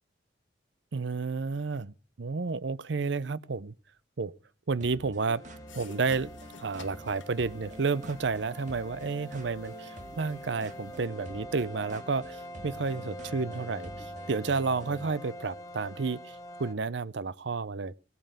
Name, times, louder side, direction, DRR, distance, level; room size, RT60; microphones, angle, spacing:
voice 1, 0.9-3.7 4.2-4.3 4.7-5.4 5.7-6.3 6.6-17.9, right 4 dB, 70° right, 0.6 m, -31 dB
sound 1, 4.8-15.1, equal, 40° right, 2.2 m, -48 dB
sound 2, 5.3-16.7, equal, 20° left, 1.2 m, -45 dB
sound 3, 5.7-11.0, left 3 dB, 80° left, 1.3 m, -53 dB
17.5 x 9.1 x 6.5 m
head